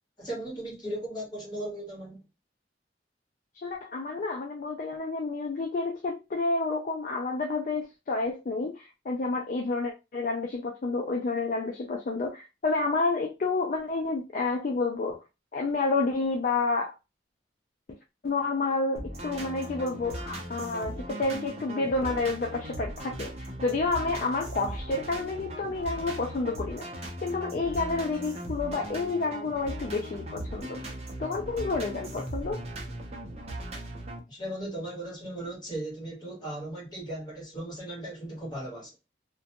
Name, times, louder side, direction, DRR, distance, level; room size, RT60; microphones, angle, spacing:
voice 1, 0.2-2.2 34.3-38.9, right 1 dB, 25° left, 1.2 m, -37 dB
voice 2, 3.6-15.2 15.5-16.9 18.2-26.9 27.2-30.8 31.2-32.6, left 3 dB, 45° left, 0.3 m, -29 dB
sound 1, 19.0-34.2, right 1 dB, 35° right, 0.6 m, -38 dB
2.4 x 2.2 x 2.8 m
head